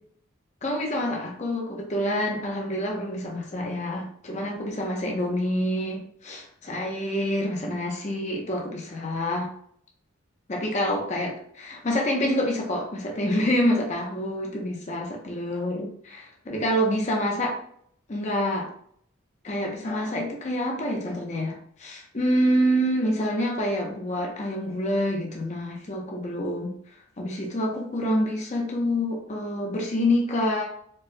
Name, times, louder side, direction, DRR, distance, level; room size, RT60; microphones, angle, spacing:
voice 1, 0.6-9.5 10.5-17.6 18.1-18.7 19.4-26.7 27.2-30.6, equal, 35° left, 0 dB, 0.6 m, -27 dB
4.5 x 2.0 x 2.6 m, 0.64 s
head